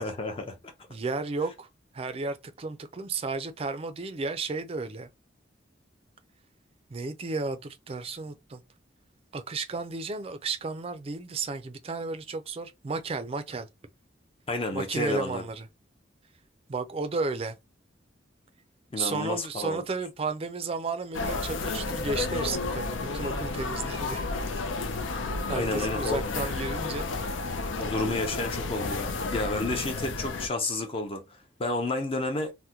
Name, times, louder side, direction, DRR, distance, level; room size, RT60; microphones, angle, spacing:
voice 1, 0.0-0.7 14.5-15.5 18.9-19.8 25.5-26.3 27.8-32.5, left 2 dB, 30° left, 0.5 m, -31 dB
voice 2, 0.9-1.7 1.9-5.1 6.9-8.6 9.3-13.7 14.7-15.7 16.7-17.6 19.0-24.2 24.5-24.6 25.1-25.2 25.5-27.1 29.6-29.9, right 3 dB, 30° right, 0.4 m, -33 dB
sound 1, 21.1-30.5, left 3 dB, 85° left, 0.5 m, -32 dB
2.8 x 2.1 x 3.5 m
head